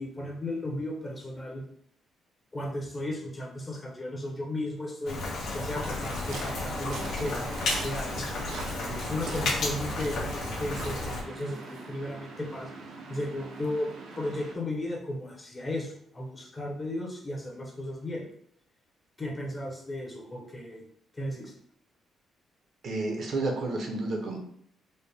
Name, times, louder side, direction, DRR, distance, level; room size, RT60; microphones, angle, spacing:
voice 1, 0.0-1.6 2.5-5.2 5.5-7.5 7.8-8.3 8.8-12.7 13.1-13.9 14.2-18.3 19.2-20.8 21.2-21.5, left 1 dB, 20° left, -1 dB, 0.7 m, -35 dB
Rain, 5.1-11.2, left 2 dB, 80° left, 0.9 m, -33 dB
Waves surf, 5.8-14.5, right 3 dB, 85° right, 0.6 m, -42 dB
voice 2, 22.8-24.4, right 2 dB, 50° right, 2 dB, 0.6 m, -30 dB
4.1 x 2.1 x 3.3 m, 0.65 s
cardioid pair, 160°, 0 cm